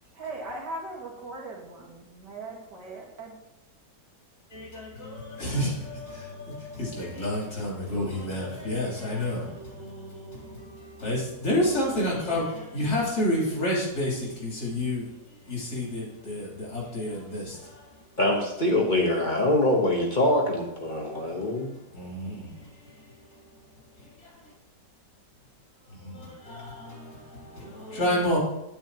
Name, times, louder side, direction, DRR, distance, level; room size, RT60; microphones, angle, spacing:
voice 1, 0.1-3.4, right 2 dB, 85° right, 2.3 m, -39 dB
voice 2, 4.5-17.9 21.1-21.6 21.9-23.6 24.0-24.5 25.9-28.4, left 1 dB, 65° left, 3.5 m, -30 dB
voice 3, 18.2-21.7, left 1 dB, 30° left, 1.1 m, -24 dB
8.9 x 8.8 x 2.9 m
omnidirectional pair, 1.8 m